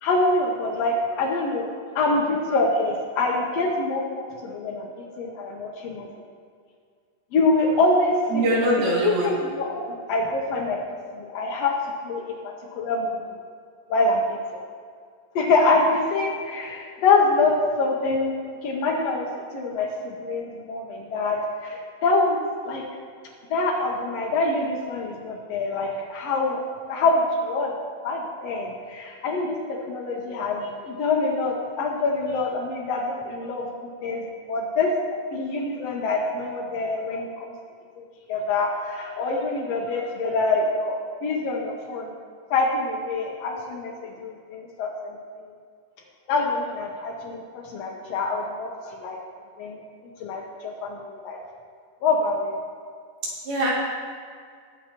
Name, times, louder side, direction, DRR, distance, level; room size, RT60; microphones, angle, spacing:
voice 1, 0.0-1.7 1.9-6.1 7.3-8.4 9.0-10.8 11.1-11.8 12.0-13.2 13.9-14.6 15.3-18.3 18.6-22.4 22.6-22.8 23.5-26.6 26.9-27.7 28.0-37.5 38.0-42.1 42.5-45.2 46.3-49.2 49.6-49.8 50.2-51.4 52.0-52.6, left 3 dB, 85° left, -1 dB, 1.4 m, -25 dB
voice 2, 8.3-9.3 53.5-53.7, right 1 dB, 85° right, -6 dB, 4.2 m, -22 dB
19.5 x 7.0 x 3.0 m, 2.1 s
omnidirectional pair, 4.1 m